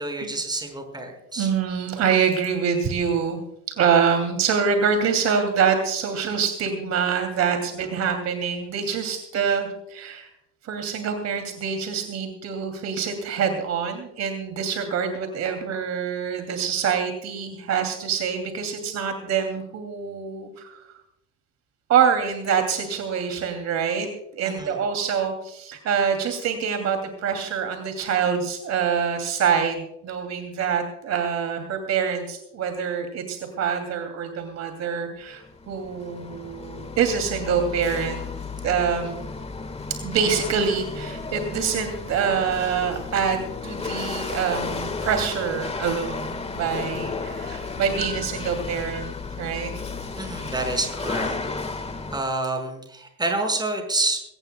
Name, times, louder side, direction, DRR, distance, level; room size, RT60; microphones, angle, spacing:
voice 1, 0.0-1.5 24.4-24.7 50.2-51.4 52.1-54.2, right 2 dB, 10° right, 4 dB, 5.2 m, -28 dB
voice 2, 1.4-3.4 3.7-10.3 10.6-20.8 21.9-38.3 38.6-39.2 39.9-49.7, right 6 dB, 50° right, 6 dB, 2.7 m, -25 dB
Chatter / Hiss / Rattle, 35.3-52.2, left 4 dB, 20° left, 1.5 m, -33 dB
22.0 x 18.0 x 2.2 m, 0.80 s
cardioid pair, 125°, 33 cm